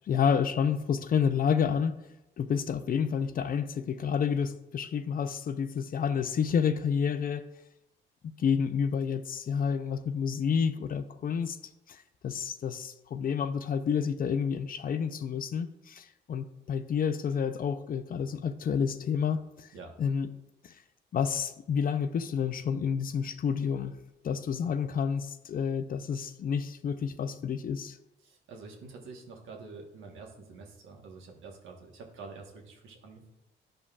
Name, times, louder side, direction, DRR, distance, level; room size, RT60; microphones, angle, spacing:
voice 1, 0.1-1.9 2.4-7.5 8.4-11.6 11.9-12.0 12.2-19.7 20.0-20.3 21.1-23.9 24.2-28.0, left 7 dB, 45° left, 0.5 m, -29 dB
voice 2, 28.2-33.3, right 4 dB, 80° right, 1.4 m, -47 dB
11.0 x 5.2 x 2.4 m
cardioid pair, 90°, 20 cm